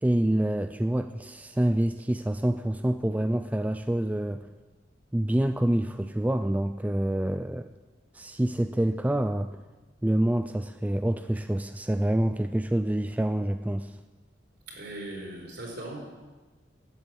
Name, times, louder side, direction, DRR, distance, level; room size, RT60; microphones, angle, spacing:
voice 1, 0.0-4.4 5.1-7.7 8.1-9.6 10.0-14.0, right 1 dB, 10° right, 8 dB, 0.3 m, -27 dB
voice 2, 14.7-16.0, right 1 dB, 65° right, -2 dB, 4.8 m, -39 dB
12.0 x 9.9 x 7.8 m, 1.2 s
head